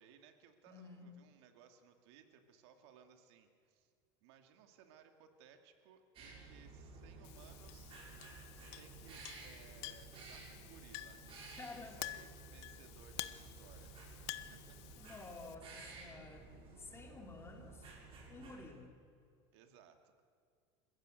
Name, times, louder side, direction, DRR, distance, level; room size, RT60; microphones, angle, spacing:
voice 1, 0.0-3.9 4.2-8.0 8.7-11.2 11.7-14.0 14.5-14.8 16.9-17.1 19.5-20.3, right 7 dB, 75° right, 6 dB, 2.5 m, -62 dB
voice 2, 0.7-1.1 11.6-12.0 15.0-16.5 16.8-17.9 18.3-19.0, left 3 dB, 20° left, 4 dB, 2.8 m, -52 dB
sound 1, 6.1-18.6, right 3 dB, 40° right, 7.1 m, -54 dB
Chink clink, 7.2-15.5, left 16 dB, 75° left, 1.2 m, -50 dB
28.5 x 15.5 x 7.9 m, 2.3 s
supercardioid pair, 135°, 14 cm